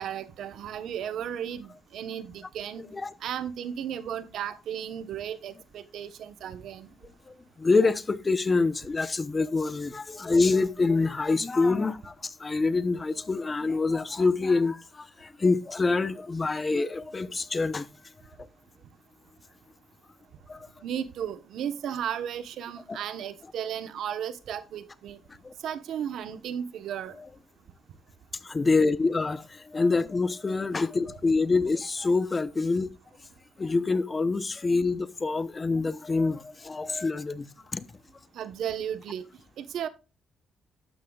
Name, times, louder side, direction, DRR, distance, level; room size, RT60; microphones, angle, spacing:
voice 1, 0.0-2.9 3.2-6.9 20.8-25.2 25.6-27.1 38.3-39.2 39.6-39.9, right 9 dB, 75° right, 1.0 m, -34 dB
voice 2, 2.8-3.1 7.3-17.9 20.5-20.7 22.9-23.0 25.4-25.5 28.4-32.9 33.6-37.8, left 3 dB, 30° left, 0.8 m, -26 dB
12.5 x 9.6 x 2.4 m
cardioid pair, 90°, 0 cm